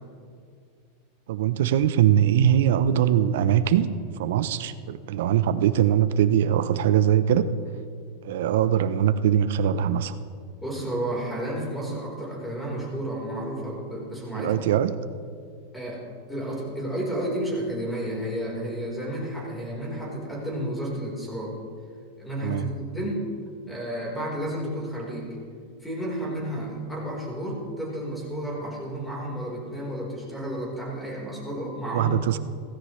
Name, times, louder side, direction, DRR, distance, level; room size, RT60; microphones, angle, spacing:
voice 1, 1.3-3.9 4.2-7.5 8.2-10.2 14.3-14.9 22.4-22.7 31.9-32.4, right 10 dB, 75° right, 13 dB, 0.7 m, -22 dB
voice 2, 10.6-14.8 15.7-16.0 16.3-21.5 22.2-23.2 23.7-25.4 25.8-32.2, right 1 dB, 5° left, -4 dB, 4.2 m, -31 dB
17.0 x 15.5 x 3.2 m, 2.3 s
supercardioid pair, 145°, 0 cm